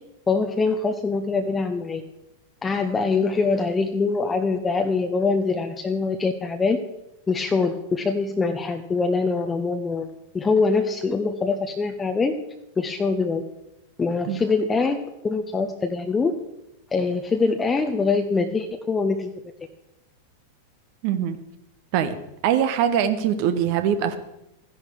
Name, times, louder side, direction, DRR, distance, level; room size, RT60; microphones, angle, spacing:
voice 1, 0.3-2.0 2.6-6.8 7.3-10.1 10.3-12.3 12.8-13.4 14.0-16.3 16.9-19.3, left 4 dB, 15° left, 5 dB, 0.9 m, -23 dB
voice 2, 21.0-21.4 21.9-22.2 22.4-24.2, right 9 dB, 50° right, 9 dB, 1.3 m, -22 dB
13.5 x 10.5 x 4.7 m, 0.91 s
figure-of-eight pair, 90°, 0 cm